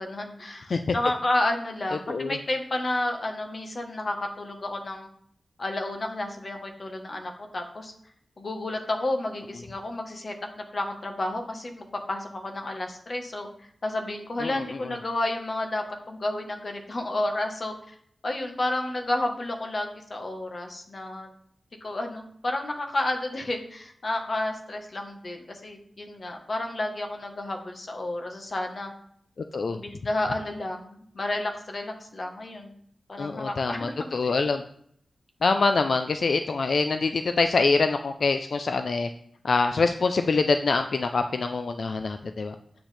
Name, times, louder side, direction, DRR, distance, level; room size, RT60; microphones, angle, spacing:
voice 1, 0.0-5.1 5.6-7.9 8.4-13.5 13.8-17.9 18.2-21.3 21.8-28.9 29.7-32.7 33.1-34.3, left 1 dB, 50° left, 3 dB, 1.2 m, -31 dB
voice 2, 14.4-14.9 29.5-29.8 33.2-34.6 35.4-39.1 39.4-42.5, left 4 dB, 70° left, 7 dB, 0.4 m, -25 dB
8.1 x 6.2 x 3.3 m, 0.66 s
wide cardioid pair, 80°, 0 cm